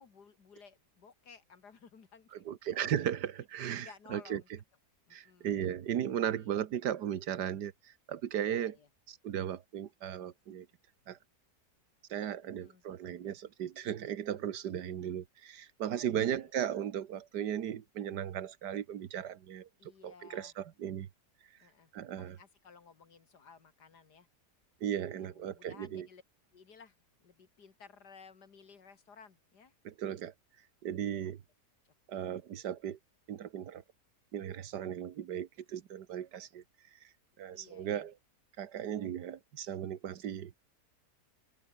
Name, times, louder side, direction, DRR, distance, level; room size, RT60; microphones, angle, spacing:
voice 1, 0.0-2.3 3.8-4.5 5.1-5.5 6.3-6.6 8.5-8.9 12.4-12.8 16.1-16.5 19.8-20.5 21.6-21.9 22.2-24.3 25.2-26.2 26.5-29.7 31.2-31.3 37.5-38.1, left 5 dB, 75° left, 2.6 m, -57 dB
voice 2, 2.5-4.4 5.1-8.8 9.1-10.7 11.1-11.2 12.1-21.1 21.9-22.4 24.8-26.1 29.9-30.3 30.8-31.4 32.1-33.0 33.3-33.8 34.3-36.6 37.0-37.1 37.4-38.1 38.6-40.5, right 10 dB, 80° right, 1.7 m, -36 dB
omnidirectional pair, 1.8 m